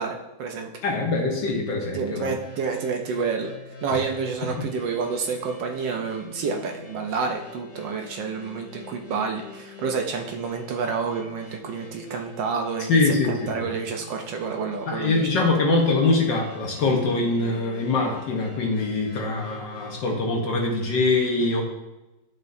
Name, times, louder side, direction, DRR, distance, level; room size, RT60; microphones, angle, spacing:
voice 1, 0.0-0.7 1.9-3.5 3.8-13.1 13.5-15.5, right 5 dB, 70° right, 3 dB, 1.3 m, -29 dB
voice 2, 0.8-2.3 3.9-4.0 12.9-13.6 14.9-21.6, left 3 dB, 60° left, 0 dB, 1.7 m, -23 dB
sound 1, 2.4-20.1, left 3 dB, 25° left, 2.6 m, -45 dB
10.5 x 6.2 x 2.6 m, 1.0 s
omnidirectional pair, 2.3 m